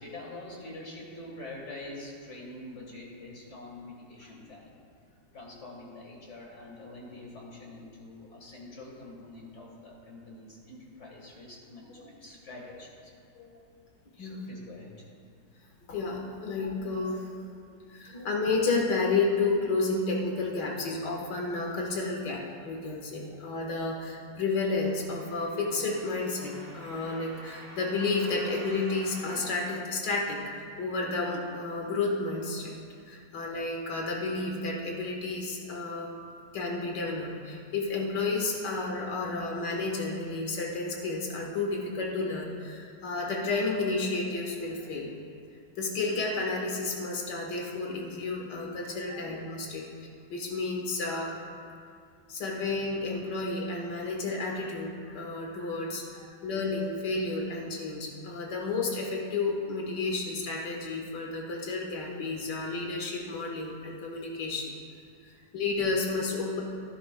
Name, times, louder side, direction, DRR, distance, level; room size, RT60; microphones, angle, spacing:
voice 1, 0.0-4.8 5.3-13.1 14.2-15.0 49.1-49.2, left 2 dB, 40° left, -2 dB, 1.8 m, -45 dB
voice 2, 15.9-17.4 17.9-32.8 33.1-36.1 36.5-45.1 45.8-49.9 50.3-51.3 52.3-64.7 65.2-66.6, left 3 dB, 65° left, -1 dB, 2.0 m, -31 dB
sound 1, 24.7-30.6 31.2-31.3, right 2 dB, 50° right, 1.5 m, -48 dB
14.0 x 11.0 x 2.3 m, 2.3 s
omnidirectional pair, 2.0 m